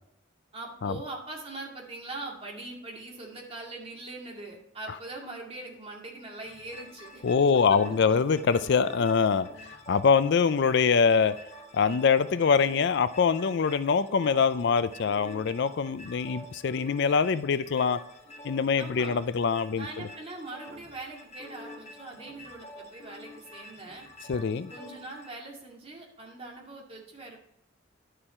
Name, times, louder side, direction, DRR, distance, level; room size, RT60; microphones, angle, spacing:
voice 1, 0.5-7.2 18.7-19.2 19.8-24.1 24.7-27.4, right 2 dB, 30° right, -1 dB, 2.2 m, -42 dB
sound 1, 6.4-25.3, left 1 dB, 35° left, 1.4 m, -48 dB
voice 2, 7.2-9.5 9.9-11.3 11.7-18.0 18.4-19.9 24.3-24.7, left 5 dB, 60° left, 14 dB, 0.4 m, -24 dB
10.5 x 6.8 x 4.3 m, 0.80 s
head